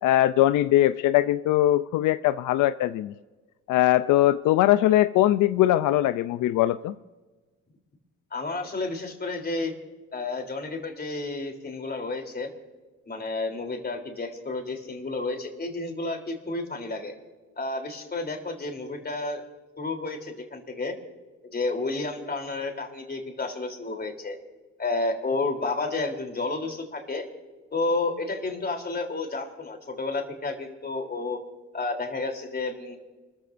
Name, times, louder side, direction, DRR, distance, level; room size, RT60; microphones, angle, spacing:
voice 1, 0.0-3.1 3.7-6.9, left 14 dB, 80° left, 13 dB, 0.5 m, -21 dB
voice 2, 8.3-9.8 10.1-12.5 13.1-17.1 17.6-19.4 19.8-21.0 21.5-24.4 24.8-27.3 27.7-31.4 31.7-33.0, left 3 dB, 30° left, 3 dB, 3.4 m, -31 dB
30.0 x 14.5 x 2.6 m, 1.3 s
cardioid pair, 90°, 30 cm